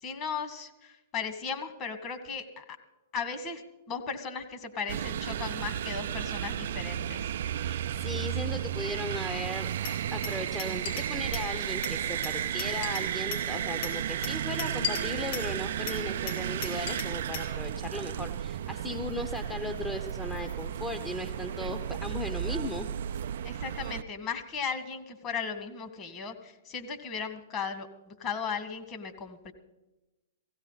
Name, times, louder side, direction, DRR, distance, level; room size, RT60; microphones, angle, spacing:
voice 1, 0.0-2.6 3.1-3.6 3.9-7.3 23.4-29.5, left 6 dB, 30° left, 5 dB, 2.0 m, -36 dB
sound 1, 4.9-24.0, right 10 dB, 65° right, 0.4 m, -33 dB
voice 2, 7.6-22.9, left 2 dB, 10° left, 5 dB, 0.9 m, -37 dB
Glass, 9.8-11.5 11.8-13.5 13.8-15.5 15.9-17.5, left 7 dB, 55° left, 3.9 m, -38 dB
16.5 x 16.5 x 4.1 m, 1.0 s
hypercardioid pair, 115°, 0 cm